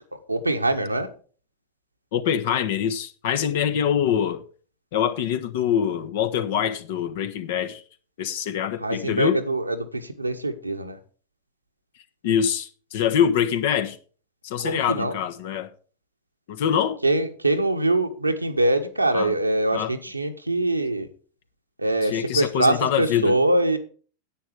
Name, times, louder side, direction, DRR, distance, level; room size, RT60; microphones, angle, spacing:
voice 1, 0.3-1.1 8.8-11.0 14.6-15.1 17.0-21.1 21.8-23.8, right 2 dB, 85° right, 1.3 m, -23 dB
voice 2, 2.1-4.4 4.9-7.8 8.2-9.4 12.2-14.0 14.4-15.7 16.5-17.0 19.1-19.3 19.7-19.9 22.0-23.3, left 8 dB, 55° left, 1.4 m, -24 dB
10.5 x 8.9 x 5.0 m
figure-of-eight pair, 90°, 0 cm